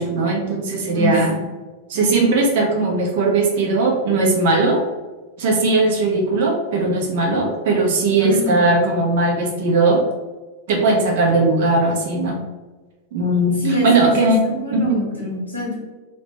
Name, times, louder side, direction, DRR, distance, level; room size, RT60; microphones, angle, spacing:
voice 1, 0.0-1.4 1.9-4.8 5.4-10.0 10.7-12.4 13.1-15.0, right 2 dB, 55° right, 0 dB, 1.0 m, -18 dB
voice 2, 8.2-8.6 13.6-15.7, left 1 dB, 90° left, -5 dB, 1.2 m, -25 dB
3.2 x 3.0 x 3.0 m, 1.3 s
figure-of-eight pair, 90°, 0 cm